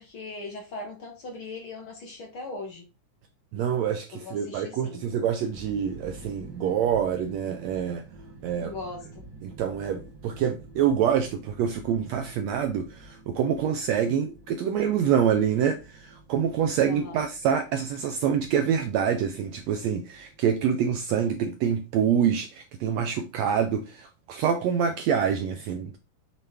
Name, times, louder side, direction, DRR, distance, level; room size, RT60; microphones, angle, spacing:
voice 1, 0.0-2.8 4.1-5.0 8.6-9.2 16.8-17.2, left 3 dB, 50° left, 2.0 m, -39 dB
voice 2, 3.5-8.0 8.4-8.7 9.4-26.0, right 8 dB, 75° right, 1.6 m, -26 dB
sound 1, 5.5-21.4, right 2 dB, 60° right, 2.2 m, -49 dB
7.3 x 4.0 x 3.5 m
omnidirectional pair, 3.6 m